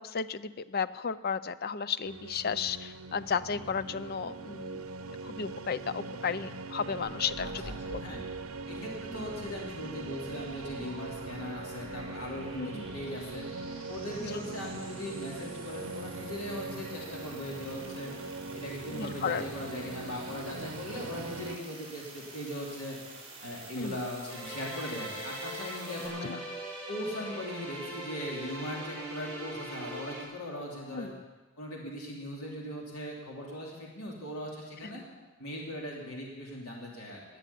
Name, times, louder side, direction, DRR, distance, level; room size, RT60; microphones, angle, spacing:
voice 1, 0.0-4.8 5.2-7.6 7.9-8.0 12.5-12.8 14.3-14.4 18.9-19.4 23.8-24.0 26.2-26.4 30.9-31.1, left 6 dB, 45° left, 15 dB, 0.5 m, -33 dB
sound 1, 2.0-21.6, right 3 dB, 75° right, 0.9 m, -41 dB
sound 2, 6.9-26.1, right 2 dB, 25° right, 4.3 m, -49 dB
voice 2, 7.4-8.2 8.7-13.5 13.9-18.1 18.5-23.0 23.4-26.4 26.9-31.1 31.6-35.0 35.4-37.2, left 1 dB, 85° left, -2 dB, 3.0 m, -39 dB
sound 3, 24.3-30.2, right 1 dB, 5° left, 4.9 m, -41 dB
20.0 x 6.9 x 8.5 m, 1.3 s
head